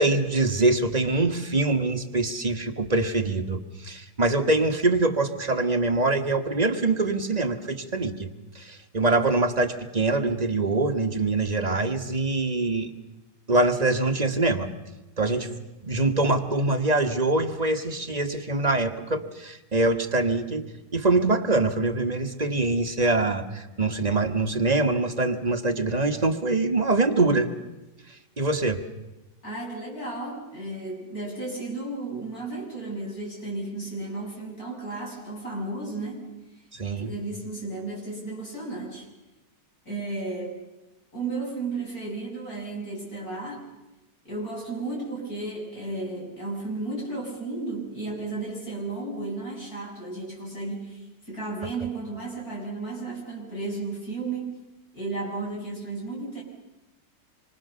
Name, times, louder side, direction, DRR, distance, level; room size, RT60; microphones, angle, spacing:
voice 1, 0.0-12.9 13.5-14.7 15.2-15.6 15.8-20.7 20.9-27.5 28.4-28.8 36.7-37.1, right 2 dB, 25° right, 5 dB, 1.5 m, -24 dB
voice 2, 29.4-36.3 37.0-39.1 39.9-40.6 41.1-43.7 44.2-54.6 54.9-56.4, right 3 dB, 55° left, -2 dB, 7.5 m, -33 dB
26.5 x 24.5 x 6.9 m, 1.0 s
omnidirectional pair, 1.9 m